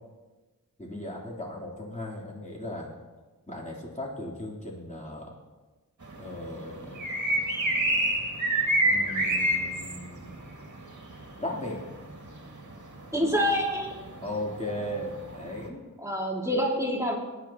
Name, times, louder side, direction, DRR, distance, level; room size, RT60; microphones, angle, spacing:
voice 1, 0.8-2.9 3.5-5.3 6.2-7.1 8.8-10.4 11.4-11.8 14.2-15.9, left 1 dB, 20° left, -4 dB, 3.4 m, -37 dB
sound 1, 6.0-15.7, right 1 dB, 55° right, 2.1 m, -29 dB
voice 2, 13.1-13.9 16.0-17.2, equal, 10° right, -2 dB, 2.4 m, -26 dB
21.0 x 10.0 x 3.0 m, 1.3 s
wide cardioid pair, 50°, 35 cm